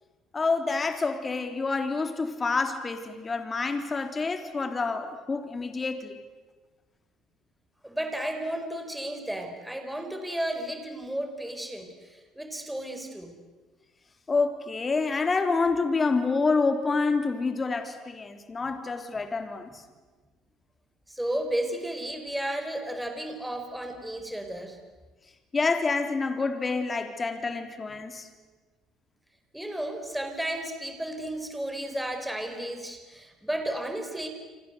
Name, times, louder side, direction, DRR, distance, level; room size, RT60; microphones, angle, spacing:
voice 1, 0.3-6.2 14.3-19.8 25.5-28.3, left 4 dB, 25° left, 7 dB, 3.6 m, -27 dB
voice 2, 7.8-13.3 18.6-18.7 21.1-24.8 29.5-34.3, right 1 dB, 5° right, 6 dB, 4.6 m, -33 dB
28.0 x 26.0 x 8.1 m, 1.3 s
supercardioid pair, 95°, 0 cm